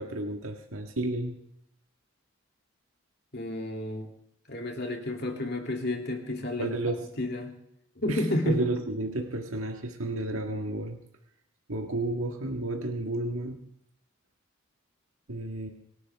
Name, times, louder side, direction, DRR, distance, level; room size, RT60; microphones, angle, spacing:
voice 1, 0.0-1.4 6.6-7.1 8.1-11.0 11.7-13.6 15.3-15.7, right 2 dB, 80° right, 2 dB, 1.8 m, -32 dB
voice 2, 3.3-4.1 4.5-6.7 7.2-7.5 8.0-8.6, left 1 dB, 50° left, 2 dB, 2.8 m, -31 dB
26.5 x 11.5 x 3.6 m, 0.76 s
head